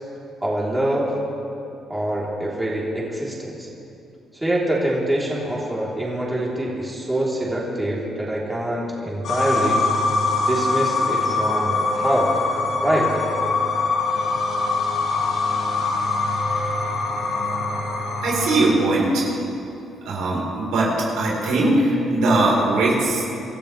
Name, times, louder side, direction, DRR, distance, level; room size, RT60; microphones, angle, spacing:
voice 1, 0.4-1.1 1.9-3.7 4.3-9.8 10.5-12.4 12.8-13.1, right 1 dB, 10° right, -5 dB, 3.7 m, -24 dB
sound 1, 9.2-18.6, left 3 dB, 75° left, 4.5 m, -23 dB
voice 2, 18.2-19.2 20.1-20.9 21.2-23.2, right 2 dB, 90° right, -4 dB, 4.3 m, -20 dB
27.0 x 13.5 x 3.4 m, 2.8 s
cardioid pair, 90°, 0 cm